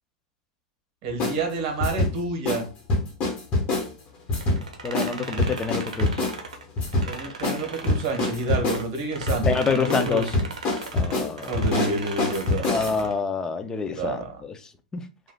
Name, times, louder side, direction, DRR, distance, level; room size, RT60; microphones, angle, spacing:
voice 1, 1.0-2.7 7.1-10.3 11.5-13.0 13.9-14.3, right 3 dB, 50° right, 3 dB, 1.2 m, -29 dB
sound 1, 1.2-1.4 1.8-2.1 2.4-2.6 2.9-3.9 4.3-4.6 4.9-5.1 5.4-6.3 6.8-7.1 7.4-7.6 7.9-8.8 9.3-9.6 9.9-10.1 10.3-13.0, left 2 dB, 35° left, 1.2 m, -24 dB
sound 2, 4.3-8.8 9.1-13.2, right 4 dB, 90° right, 0.6 m, -38 dB
voice 2, 4.8-6.2 9.5-10.3 10.9-11.7 12.7-14.5 14.9-15.0, left 5 dB, 20° left, 8 dB, 0.4 m, -27 dB
3.2 x 2.4 x 2.3 m, 0.31 s
hypercardioid pair, 115°, 4 cm